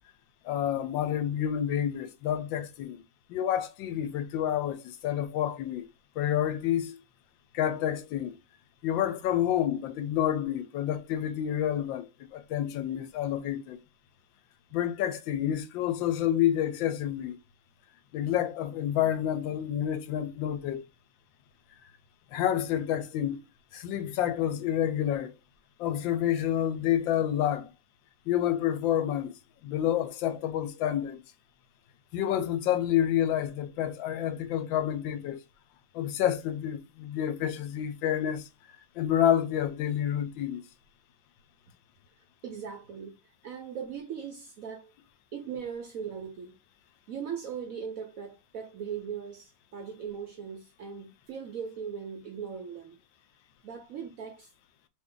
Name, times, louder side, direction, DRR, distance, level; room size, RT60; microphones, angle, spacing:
voice 1, 0.4-3.0 3.3-5.9 6.2-7.0 7.5-8.4 8.8-13.8 14.7-17.4 18.1-20.8 22.3-23.4 23.7-25.3 25.8-27.7 28.3-31.2 32.1-35.4 35.9-38.5 39.0-40.6, left 10 dB, 85° left, 1.3 m, -29 dB
voice 2, 42.4-44.9 45.3-46.6 47.1-53.0 53.6-54.5, right 7 dB, 70° right, 0.8 m, -39 dB
3.0 x 2.7 x 3.6 m
omnidirectional pair, 2.0 m